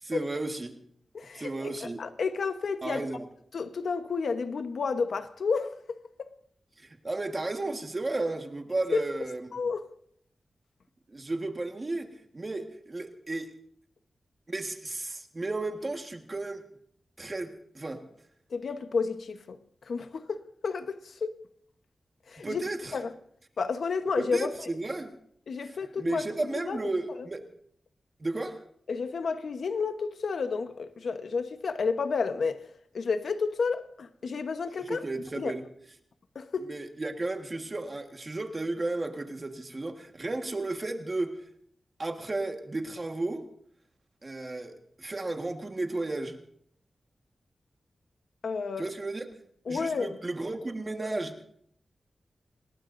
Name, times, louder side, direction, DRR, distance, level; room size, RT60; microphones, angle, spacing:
voice 1, 0.0-0.7 1.3-2.0 2.8-3.2 6.8-9.5 11.1-13.5 14.5-16.6 17.2-18.0 22.4-22.9 24.2-25.1 25.6-27.5 28.2-28.6 34.8-35.6 36.7-41.4 42.0-43.5 44.2-46.4 48.8-49.3 49.7-51.4, right 2 dB, 30° right, 1.5 m, -34 dB
voice 2, 1.1-1.7 2.0-3.0 3.5-6.3 8.9-9.0 9.5-9.8 18.5-19.6 19.9-21.3 22.3-22.6 22.9-23.1 23.6-24.5 25.5-26.8 28.9-32.6 32.9-35.0 35.3-35.5 36.3-36.7 48.4-48.9 49.7-50.2, left 5 dB, 80° left, 1.1 m, -31 dB
28.0 x 19.5 x 2.6 m
wide cardioid pair, 125°, 0 cm